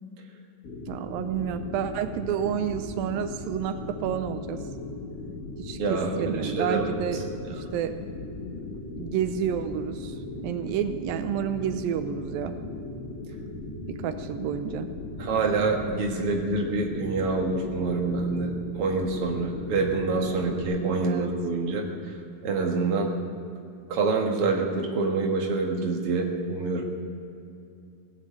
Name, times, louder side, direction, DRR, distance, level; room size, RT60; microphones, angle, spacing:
sound 1, 0.6-20.6, left 2 dB, 45° left, 3.0 m, -38 dB
voice 1, 0.9-4.6 5.6-7.2 7.5-7.9 8.9-12.6 14.0-14.9 21.0-21.3, right 9 dB, 85° right, 9 dB, 2.4 m, -30 dB
voice 2, 5.8-7.1 15.2-21.8 22.4-23.1 23.9-26.8, right 3 dB, 50° right, 1 dB, 2.2 m, -26 dB
18.0 x 7.6 x 8.3 m, 2.6 s
omnidirectional pair, 4.0 m